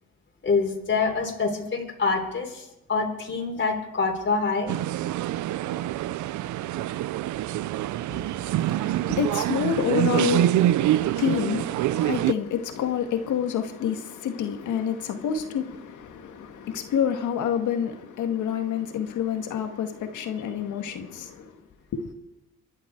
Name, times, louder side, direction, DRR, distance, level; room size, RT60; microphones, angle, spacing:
voice 1, 0.4-4.7 8.1-8.3, left 4 dB, 40° left, 3.6 m, -26 dB
sound 1, 4.7-12.3, right 13 dB, 75° right, 0.6 m, -25 dB
voice 2, 8.6-21.5 21.9-22.0, left 8 dB, 80° left, 2.0 m, -28 dB
25.5 x 11.0 x 4.7 m
cardioid pair, 90°, 30 cm